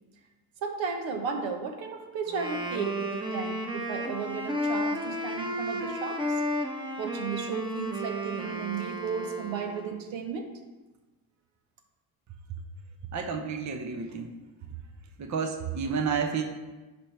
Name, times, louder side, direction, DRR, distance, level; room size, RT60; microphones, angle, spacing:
voice 1, 0.6-6.4 7.0-10.5, right 5 dB, 65° right, 4 dB, 1.1 m, -34 dB
Wind instrument woodwind instrument, 2.3-10.0, equal, 10° right, 1.1 m, -33 dB
voice 2, 13.1-14.3 15.2-16.4, right 6 dB, 35° right, 4 dB, 0.9 m, -30 dB
10.5 x 4.5 x 3.3 m, 1.2 s
supercardioid pair, 65°, 49 cm